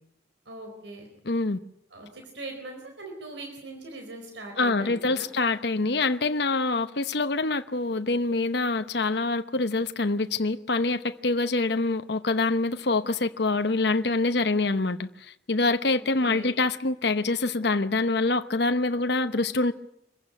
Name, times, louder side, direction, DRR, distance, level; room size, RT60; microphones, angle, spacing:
voice 1, 0.5-1.1 1.9-5.3 15.8-16.6, right 2 dB, 75° right, 4.5 m, -41 dB
voice 2, 1.2-1.6 4.6-19.7, left 3 dB, 60° left, 0.9 m, -25 dB
25.5 x 15.5 x 9.6 m
head